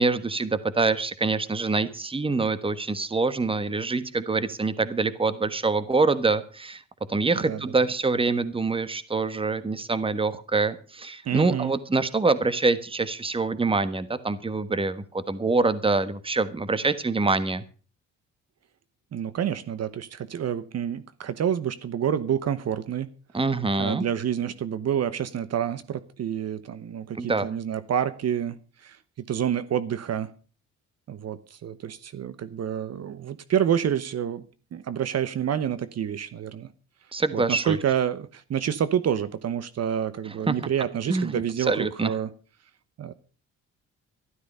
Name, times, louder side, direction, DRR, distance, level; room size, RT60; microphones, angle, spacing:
voice 1, 0.0-6.8 7.1-17.6 23.3-24.0 27.1-27.5 37.1-37.8 40.5-40.6 41.1-42.1, right 3 dB, 20° right, 14 dB, 1.3 m, -25 dB
voice 2, 11.2-11.7 19.1-23.1 23.8-29.0 29.3-30.3 31.1-34.4 34.7-36.7 37.3-42.3 43.0-43.1, right 9 dB, 55° right, 14 dB, 1.0 m, -28 dB
12.5 x 12.0 x 5.5 m, 0.38 s
cardioid pair, 90°, 30 cm